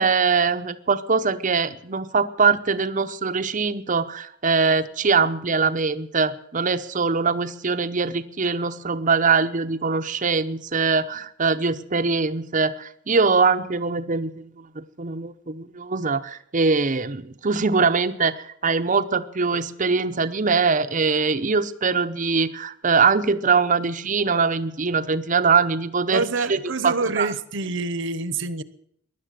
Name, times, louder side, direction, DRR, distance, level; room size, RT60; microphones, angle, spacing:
voice 1, 0.0-26.6 26.8-27.3, right 4 dB, 40° right, 10 dB, 0.8 m, -22 dB
voice 2, 26.1-28.6, right 3 dB, 65° right, 16 dB, 1.0 m, -26 dB
17.0 x 11.5 x 7.6 m, 0.68 s
head